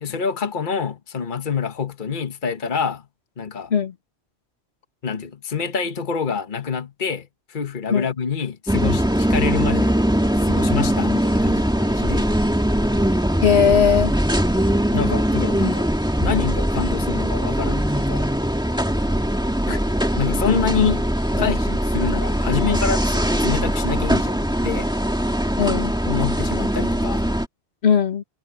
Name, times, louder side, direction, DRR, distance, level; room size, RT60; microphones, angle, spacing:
voice 1, 0.0-3.0 3.4-3.7 5.0-10.0 10.4-12.3 14.9-15.9 16.2-18.3 20.1-24.9 26.1-27.2, left 6 dB, 50° left, 1.4 m, -26 dB
sound 1, 8.7-27.5, equal, 5° right, 2.0 m, -21 dB
voice 2, 13.4-14.1 19.7-19.8 21.4-21.5 25.6-25.9 27.8-28.2, left 7 dB, 70° left, 1.6 m, -18 dB
omnidirectional pair, 1.1 m